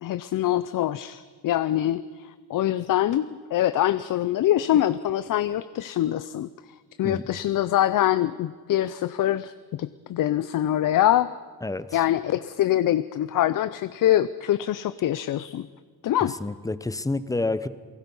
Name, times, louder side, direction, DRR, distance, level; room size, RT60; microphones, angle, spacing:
voice 1, 0.0-6.5 7.0-11.3 11.9-15.7 16.0-16.3, left 12 dB, 55° left, 14 dB, 0.6 m, -24 dB
voice 2, 11.6-12.0 16.2-17.7, left 2 dB, 10° left, 14 dB, 0.7 m, -29 dB
28.5 x 19.0 x 5.5 m, 1.5 s
cardioid pair, 125°, 39 cm